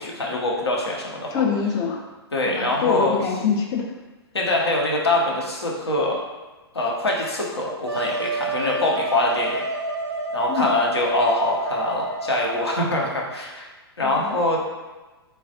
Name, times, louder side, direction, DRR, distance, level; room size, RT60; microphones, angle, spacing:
voice 1, 0.0-1.4 2.3-3.2 4.3-6.2 6.7-9.6 10.3-13.7 14.0-14.6, left 2 dB, 75° left, -2 dB, 0.7 m, -24 dB
voice 2, 1.3-2.0 2.5-4.0 10.5-10.7 14.0-14.4, left 6 dB, 25° left, 1 dB, 0.4 m, -24 dB
Wind instrument woodwind instrument, 7.9-13.4, right 2 dB, 90° right, 0.5 m, -29 dB
3.2 x 2.3 x 2.7 m, 1.2 s
figure-of-eight pair, 115°, 14 cm